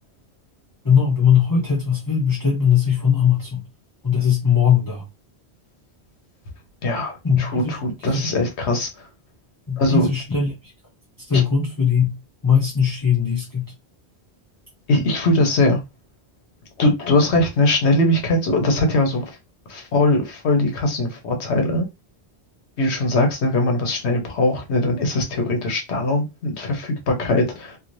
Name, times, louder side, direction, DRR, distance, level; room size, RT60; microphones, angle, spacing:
voice 1, 0.8-3.6 4.0-5.0 7.2-7.7 8.0-8.3 9.7-10.5 11.3-12.2 12.4-13.7, left 7 dB, 25° left, 0.6 m, -19 dB
voice 2, 6.8-8.9 9.8-10.1 11.3-11.4 14.9-15.8 16.8-19.2 19.7-21.9 22.8-27.8, left 2 dB, 85° left, 1.2 m, -20 dB
3.1 x 2.7 x 2.6 m
omnidirectional pair, 1.1 m